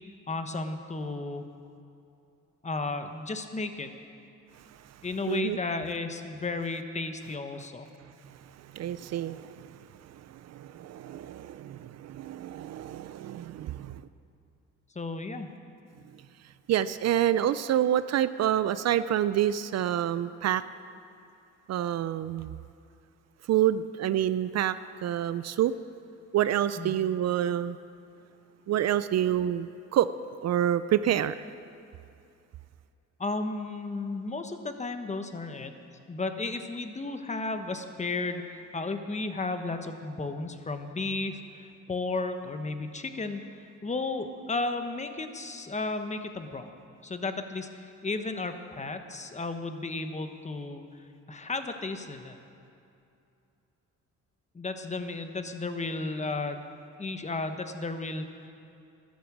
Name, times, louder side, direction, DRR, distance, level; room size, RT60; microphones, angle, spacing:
voice 1, 0.3-1.4 2.6-3.9 5.0-7.9 14.9-15.5 26.8-27.0 33.2-35.7 36.1-43.4 43.8-46.7 47.0-50.9 51.3-52.4 54.5-56.6 57.0-58.5, left 3 dB, 25° left, 7 dB, 1.1 m, -33 dB
voice 2, 5.3-5.6 8.6-14.0 16.7-20.6 21.7-22.6 23.5-25.8 26.3-27.8 28.7-30.1 30.4-31.5, right 11 dB, 60° right, 14 dB, 0.5 m, -28 dB
13.0 x 10.5 x 7.3 m, 2.6 s
cardioid pair, 90°, 30 cm